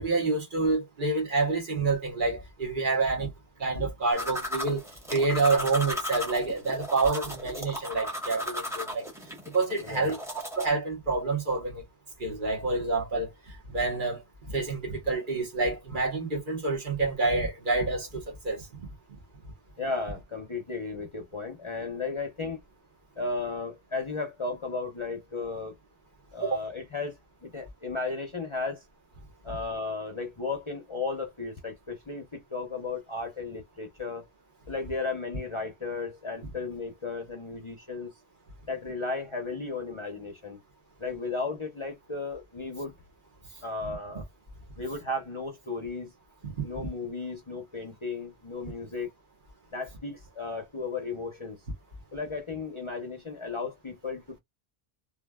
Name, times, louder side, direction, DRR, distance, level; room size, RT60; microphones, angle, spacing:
voice 1, 0.0-3.3 3.6-4.8 5.1-9.0 9.5-10.2 10.6-11.8 12.2-13.3 13.7-14.2 14.5-18.9 26.4-26.6 43.8-43.9 46.4-46.9, right 3 dB, 50° right, 1.3 m, -28 dB
sound 1, 4.1-10.7, left 1 dB, 5° right, 0.8 m, -36 dB
voice 2, 19.8-22.6 23.2-25.7 26.3-28.8 29.4-34.3 34.7-38.1 38.7-40.6 41.0-42.9 43.6-44.2 44.8-46.1 46.6-49.1 49.7-51.6 52.1-54.4, left 3 dB, 35° left, 0.6 m, -35 dB
3.2 x 2.3 x 2.2 m
omnidirectional pair, 1.1 m